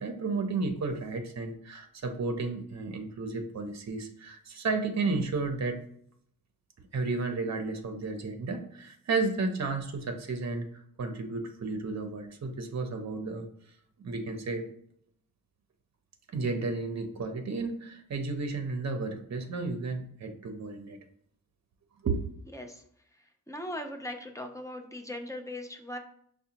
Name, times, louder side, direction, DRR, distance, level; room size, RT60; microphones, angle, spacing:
voice 1, 0.0-5.8 6.9-10.7 11.0-13.5 14.0-14.7 16.3-21.0 22.0-22.2, right 3 dB, 50° right, 6 dB, 0.6 m, -32 dB
voice 2, 23.5-26.0, left 1 dB, 10° left, 4 dB, 0.4 m, -39 dB
5.8 x 2.1 x 2.8 m, 0.66 s
wide cardioid pair, 120°, 35 cm